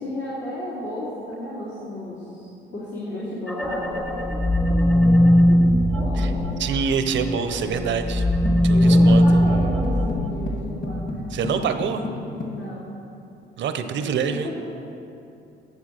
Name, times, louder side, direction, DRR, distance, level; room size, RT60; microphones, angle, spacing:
voice 1, 0.0-6.5 8.7-11.2 12.5-12.9 13.9-14.6, left 1 dB, 75° left, -8 dB, 2.5 m, -33 dB
sound 1, 3.5-7.4 7.7-11.1, equal, 5° left, 0.8 m, -19 dB
voice 2, 6.6-8.2 8.6-9.4 11.3-12.0 13.6-14.5, right 6 dB, 65° right, 8 dB, 0.8 m, -26 dB
sound 2, 8.4-12.6, left 2 dB, 45° left, 1.8 m, -33 dB
9.4 x 7.0 x 6.4 m, 2.7 s
cardioid pair, 90°, 20 cm